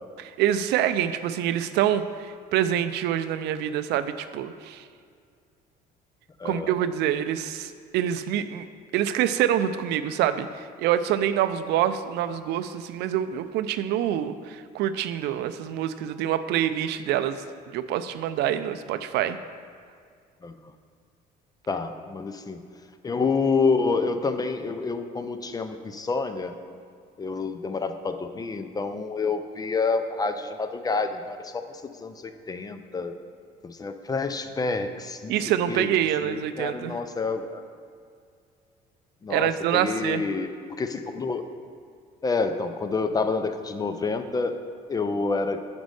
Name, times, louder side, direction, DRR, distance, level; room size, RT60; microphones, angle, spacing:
voice 1, 0.2-4.8 6.4-8.7 8.9-19.4 35.3-36.9 39.3-40.2, right 10 dB, 80° right, 12 dB, 0.4 m, -26 dB
voice 2, 6.4-6.7 20.4-20.6 21.7-22.6 23.0-26.5 27.2-33.1 33.6-35.3 35.7-35.9 36.2-37.6 39.2-41.4 42.2-44.6 44.9-45.6, left 4 dB, 20° left, 8 dB, 0.4 m, -28 dB
5.2 x 5.1 x 6.2 m, 2.2 s
cardioid pair, 110°, 17 cm